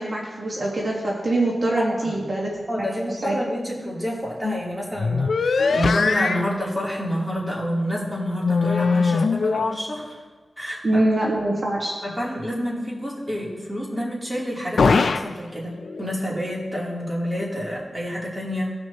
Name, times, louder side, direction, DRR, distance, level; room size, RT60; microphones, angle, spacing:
voice 1, 0.0-3.4 10.8-11.9, right 1 dB, 50° right, -3 dB, 1.5 m, -24 dB
voice 2, 1.8-2.1 2.7-10.2 10.6-10.8 12.0-18.7, equal, 10° right, -5 dB, 3.0 m, -28 dB
sound 1, 4.4-4.6 5.0-6.5 8.4-9.8 14.8-15.3 15.7-16.1, left 4 dB, 90° left, 0.4 m, -21 dB
17.0 x 6.3 x 2.9 m, 1.4 s
wide cardioid pair, 85°, 0 cm